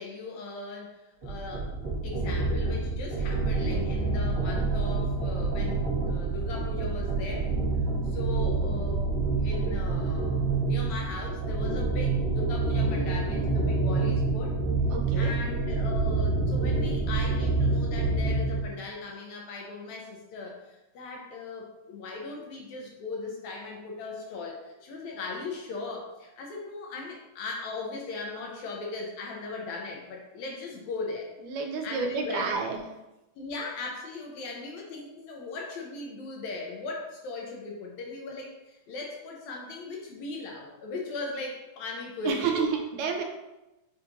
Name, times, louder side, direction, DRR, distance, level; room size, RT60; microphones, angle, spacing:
voice 1, 0.0-1.7 2.0-7.5 8.0-9.1 9.3-14.6 15.1-31.3 31.8-32.5 33.4-42.7, left 3 dB, 75° left, 0 dB, 1.8 m, -38 dB
sound 1, 1.2-18.7, right 3 dB, 60° right, 0.7 m, -27 dB
voice 2, 14.9-15.4 31.4-32.8 42.2-43.2, right 5 dB, 85° right, 3 dB, 2.1 m, -30 dB
6.7 x 2.8 x 2.6 m, 1.0 s
omnidirectional pair, 3.5 m